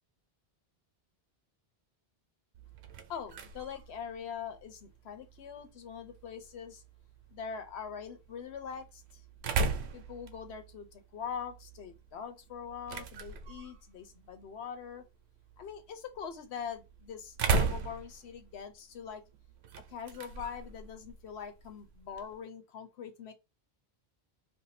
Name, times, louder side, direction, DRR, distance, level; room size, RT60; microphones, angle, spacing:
sound 1, 2.5-22.4, right 4 dB, 85° right, 0.8 m, -39 dB
voice 1, 3.1-6.8 7.3-9.2 9.9-15.0 15.6-19.2 19.9-23.3, left 7 dB, 85° left, 1.0 m, -43 dB
2.7 x 2.0 x 4.0 m
omnidirectional pair, 1.1 m